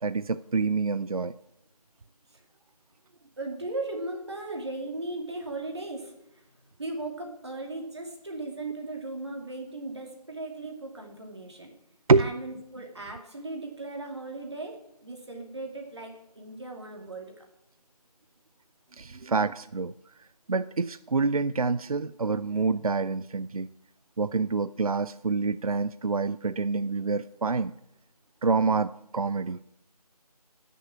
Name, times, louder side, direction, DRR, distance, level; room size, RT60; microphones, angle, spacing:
voice 1, 0.0-1.3 12.1-12.3 19.0-19.9 20.5-23.7 24.2-27.7 28.4-29.6, right 4 dB, 65° right, 13 dB, 0.5 m, -27 dB
voice 2, 3.4-6.5 6.8-11.7 12.2-17.4, right 2 dB, 45° right, 1 dB, 2.4 m, -37 dB
15.0 x 6.9 x 8.6 m, 0.83 s
figure-of-eight pair, 175°, 20 cm